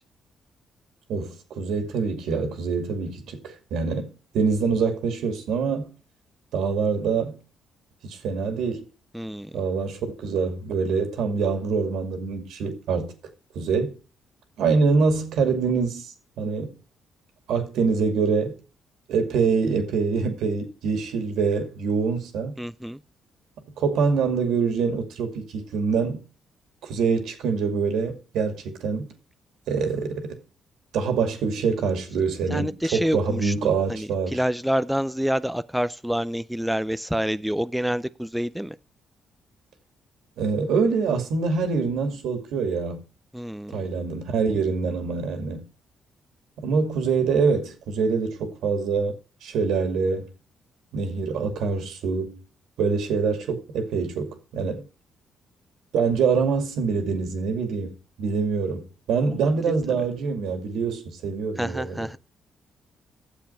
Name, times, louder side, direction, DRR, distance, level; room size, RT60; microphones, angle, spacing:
voice 1, 1.1-5.9 6.5-7.4 8.0-8.8 9.5-13.1 13.5-14.0 14.6-16.7 17.5-18.6 19.1-22.6 23.8-26.2 26.8-29.1 29.7-30.4 30.9-34.4 40.4-43.0 43.7-45.6 46.6-49.1 49.4-50.3 50.9-52.4 52.8-54.8 55.9-57.9 58.2-62.1, right 5 dB, 80° right, 2.3 m, -25 dB
voice 2, 9.1-9.5 22.6-23.0 32.5-38.8 43.3-43.9 61.6-62.2, equal, 5° right, 0.4 m, -27 dB
9.2 x 7.4 x 5.6 m
cardioid pair, 90°, 0 cm